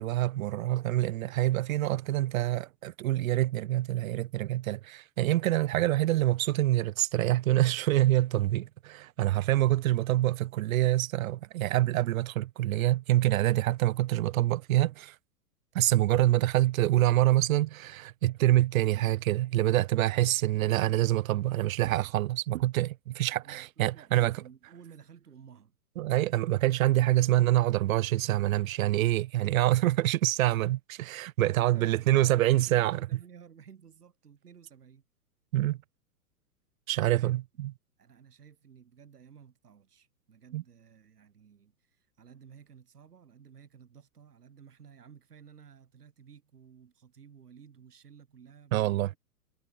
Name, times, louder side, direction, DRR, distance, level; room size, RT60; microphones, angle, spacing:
voice 1, 0.0-15.2 15.7-24.4 26.0-33.0 35.5-35.8 36.9-37.7 40.5-40.6 48.7-49.1, right 15 dB, 60° right, 0.5 m, -26 dB
voice 2, 23.1-25.8 31.4-35.0 36.9-37.4 38.0-49.2, right 7 dB, 80° right, 3.5 m, -54 dB
hypercardioid pair, 110°, 46 cm